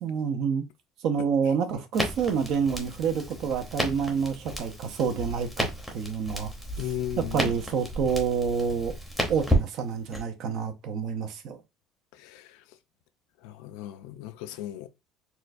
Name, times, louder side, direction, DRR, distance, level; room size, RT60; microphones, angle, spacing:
voice 1, 0.0-0.6 1.0-6.5 7.2-9.0 9.3-11.6, right 6 dB, 50° right, 0.6 m, -28 dB
Crackle, 1.9-10.2, equal, ahead, 0.8 m, -32 dB
voice 2, 6.8-7.5 12.1-12.6 13.4-14.9, left 12 dB, 80° left, 0.4 m, -36 dB
4.3 x 2.3 x 2.6 m
cardioid pair, 165°, 0 cm